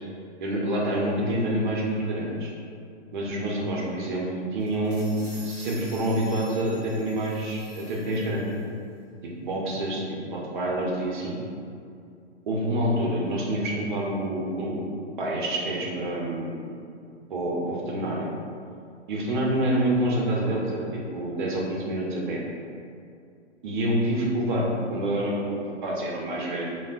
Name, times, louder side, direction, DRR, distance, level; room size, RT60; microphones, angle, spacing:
voice 1, 0.4-2.5 3.1-8.5 9.2-10.0 10.3-11.4 12.5-14.8 15.2-16.6 17.3-18.3 19.1-22.4 23.6-26.7, right 1 dB, 45° right, -3 dB, 0.6 m, -27 dB
sound 1, 4.6-8.6, left 1 dB, 10° left, 0.6 m, -48 dB
3.4 x 2.1 x 2.4 m, 2.4 s
figure-of-eight pair, 120°, 35 cm